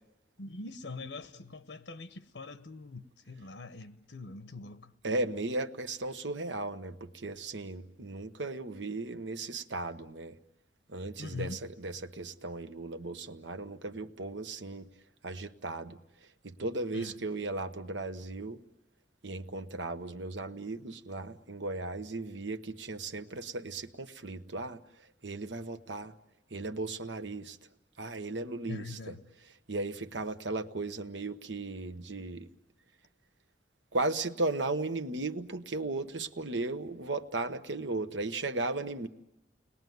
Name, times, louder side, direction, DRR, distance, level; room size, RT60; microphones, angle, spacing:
voice 1, 0.4-4.9 11.2-11.6 16.9-17.2 28.6-29.2, left 3 dB, 90° left, 0.9 m, -43 dB
voice 2, 5.0-10.3 10.9-14.9 15.2-16.0 16.4-18.6 19.2-24.8 25.2-26.1 26.5-27.6 28.0-29.2 29.4-32.5 33.9-39.1, right 2 dB, 90° right, 1.2 m, -36 dB
30.0 x 20.5 x 9.4 m
head